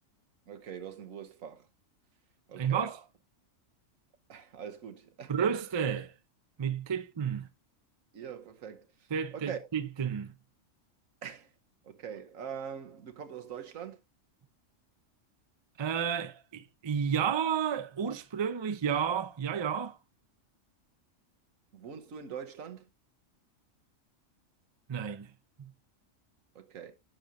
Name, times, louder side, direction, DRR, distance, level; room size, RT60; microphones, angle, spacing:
voice 1, 0.5-1.7 2.5-2.9 4.3-5.3 8.1-8.9 9.3-9.7 11.2-11.5 11.8-14.0 21.7-22.9 26.5-26.9, right 7 dB, 85° right, 1.4 m, -43 dB
voice 2, 2.6-3.0 5.3-6.1 6.6-7.5 9.1-10.3 15.8-20.0 24.9-25.3 25.6-25.7, right 7 dB, 35° right, 0.4 m, -31 dB
10.0 x 6.7 x 2.5 m
omnidirectional pair, 1.4 m